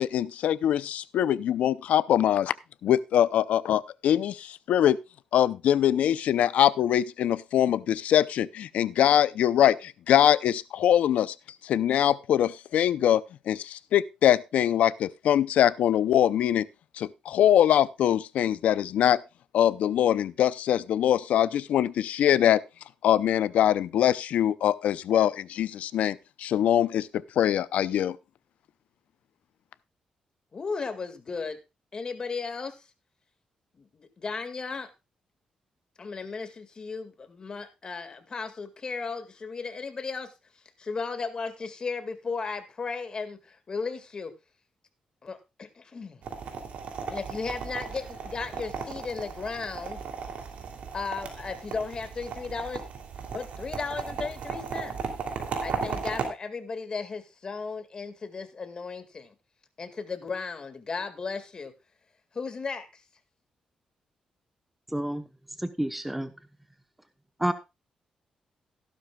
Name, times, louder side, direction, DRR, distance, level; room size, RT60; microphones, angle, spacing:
voice 1, 0.0-2.5 2.8-5.0 5.3-11.3 11.6-16.7 17.0-19.2 19.5-22.6 23.0-28.2, left 10 dB, 85° left, 0.6 m, -23 dB
voice 2, 30.5-31.6 31.9-32.8 33.8-34.9 36.0-40.3 40.8-44.3 45.2-46.2 47.1-50.0 50.9-52.8 53.3-55.0 55.6-59.3 59.8-61.7 62.3-63.0, left 4 dB, 35° left, 2.0 m, -35 dB
sound 1, 46.2-56.3, right 5 dB, 75° right, 2.9 m, -36 dB
voice 3, 64.9-65.2 65.6-66.3 67.4-67.5, right 1 dB, 5° right, 0.9 m, -29 dB
15.0 x 12.0 x 2.3 m
cardioid pair, 115°, 2 cm